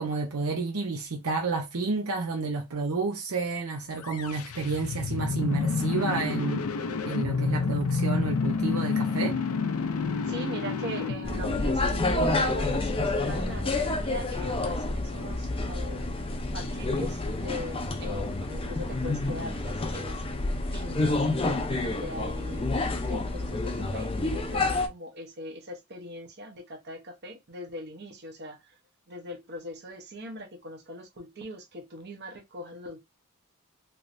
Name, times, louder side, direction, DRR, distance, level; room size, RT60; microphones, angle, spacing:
voice 1, 0.0-6.6 7.0-9.4, right 4 dB, 75° right, 0.7 m, -30 dB
sound 1, 4.0-12.1, left 4 dB, 80° left, 0.5 m, -29 dB
voice 2, 10.3-16.2 16.5-20.2 20.7-28.7 29.1-33.0, left 1 dB, 50° right, 0.9 m, -40 dB
sound 2, 11.2-24.9, left 2 dB, 25° left, 0.5 m, -29 dB
3.2 x 3.2 x 2.6 m
head